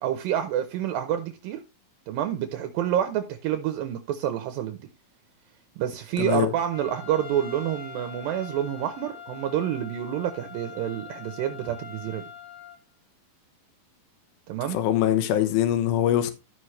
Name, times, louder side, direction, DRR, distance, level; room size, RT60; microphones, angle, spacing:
voice 1, 0.0-1.6 2.1-4.8 5.8-12.2 14.5-14.8, right 10 dB, 75° right, 2.4 m, -28 dB
voice 2, 6.2-6.5 14.7-16.3, left 11 dB, 80° left, 2.8 m, -23 dB
Trumpet, 6.7-12.8, left 7 dB, 55° left, 2.5 m, -43 dB
12.5 x 6.2 x 3.1 m
omnidirectional pair, 4.3 m